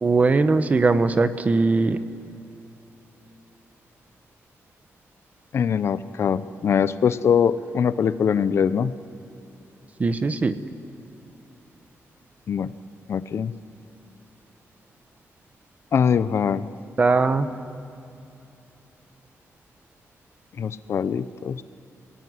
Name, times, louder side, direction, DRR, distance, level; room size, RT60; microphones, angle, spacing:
voice 1, 0.0-2.0 10.0-10.5 17.0-17.5, right 3 dB, 25° right, 11 dB, 0.9 m, -20 dB
voice 2, 5.5-9.0 12.5-12.7 13.1-13.5 15.9-16.7 20.5-21.6, left 7 dB, 50° left, 14 dB, 0.7 m, -22 dB
28.5 x 18.0 x 9.7 m, 2.8 s
wide cardioid pair, 175°, 6 cm